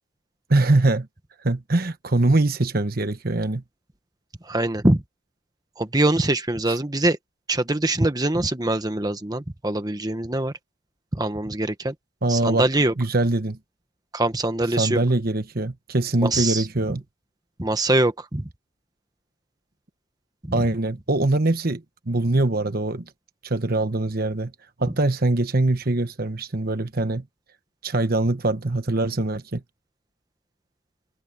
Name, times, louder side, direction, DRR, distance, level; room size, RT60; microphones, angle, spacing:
voice 1, 0.5-1.1 1.4-3.6 12.2-12.7 13.0-13.6 14.8-17.0 20.5-23.0 23.4-24.5 24.8-27.2 27.8-29.6, right 2 dB, 45° right, 1.1 m, -23 dB
voice 2, 4.4-5.0 5.8-7.2 7.5-10.5 11.1-11.9 12.3-12.9 14.1-15.0 16.2-16.7 17.6-18.5 20.4-20.5, right 2 dB, 20° right, 1.1 m, -23 dB
head